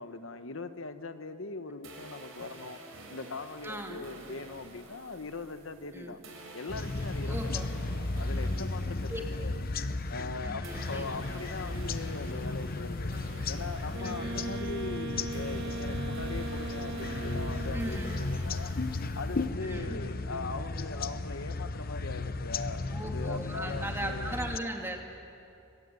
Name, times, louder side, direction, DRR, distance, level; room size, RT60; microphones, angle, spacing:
voice 1, 0.0-2.8 3.1-6.2 6.5-9.5 10.1-13.1 13.5-18.7 19.1-24.4, left 3 dB, 75° left, 9 dB, 1.2 m, -41 dB
sound 1, 1.8-10.3 10.6-19.4, right 2 dB, 85° right, 5.5 m, -50 dB
voice 2, 3.6-4.0 5.9-6.2 7.3-7.7 9.1-9.2 10.4-11.1 14.0-14.5 17.7-18.2 19.6-20.0 22.9-25.2, right 1 dB, 10° right, 2 dB, 2.7 m, -38 dB
sound 2, 6.7-24.6, left 3 dB, 45° left, 0.8 m, -35 dB
Wind instrument woodwind instrument, 13.9-18.3, right 2 dB, 60° right, 1.4 m, -39 dB
24.5 x 23.5 x 9.6 m, 2.6 s
head